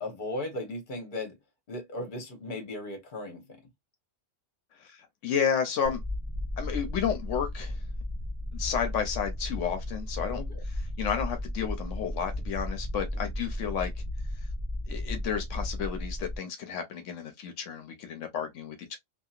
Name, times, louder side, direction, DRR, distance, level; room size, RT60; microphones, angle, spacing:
voice 1, 0.0-1.4 1.7-3.6 10.3-10.6, left 1 dB, 45° left, 1.1 m, -36 dB
voice 2, 4.8-6.0 6.6-7.8 8.5-10.4 10.7-13.9 14.9-19.0, left 7 dB, 80° left, 1.0 m, -32 dB
sound 1, 5.8-16.4, left 1 dB, 25° right, 1.1 m, -34 dB
2.8 x 2.7 x 2.4 m
omnidirectional pair, 1.3 m